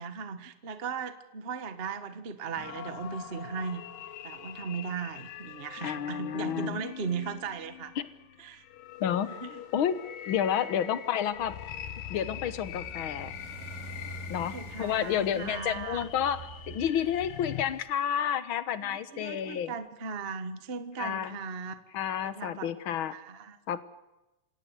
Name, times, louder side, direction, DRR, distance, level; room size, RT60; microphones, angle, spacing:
voice 1, 0.0-3.8 4.2-7.9 8.4-8.6 9.2-9.6 10.6-10.7 14.3-16.1 18.8-21.8 22.2-22.7 23.1-23.6, right 5 dB, 35° right, 10 dB, 0.9 m, -37 dB
sound 1, 2.6-17.6, left 11 dB, 85° left, 2.9 m, -43 dB
voice 2, 5.8-6.8 8.0-8.1 9.0-9.3 9.7-10.0 10.3-11.6 12.1-13.3 14.3-19.7 21.0-21.4 21.9-23.1 23.7-23.8, left 9 dB, 60° left, 13 dB, 1.4 m, -30 dB
sound 2, 12.6-17.8, right 2 dB, 80° right, 6.3 m, -45 dB
27.5 x 17.5 x 8.0 m, 1.0 s
omnidirectional pair, 3.7 m